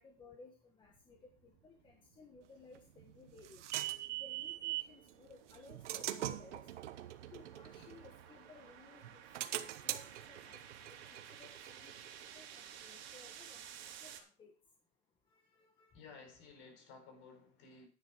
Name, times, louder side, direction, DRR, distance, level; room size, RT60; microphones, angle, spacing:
voice 1, 0.0-3.7 4.2-6.7 7.3-9.2 9.8-13.7 14.0-14.5 15.3-16.0, left 4 dB, 15° left, 1.2 m, -59 dB
sound 1, 0.8-14.2, right 9 dB, 55° right, 3.1 m, -56 dB
sound 2, 2.8-5.0 5.5-8.6 9.0-12.5, right 13 dB, 85° right, 1.2 m, -43 dB
voice 2, 15.9-17.9, left 4 dB, 40° left, 4.5 m, -55 dB
11.5 x 9.4 x 4.4 m
supercardioid pair, 155°, 34 cm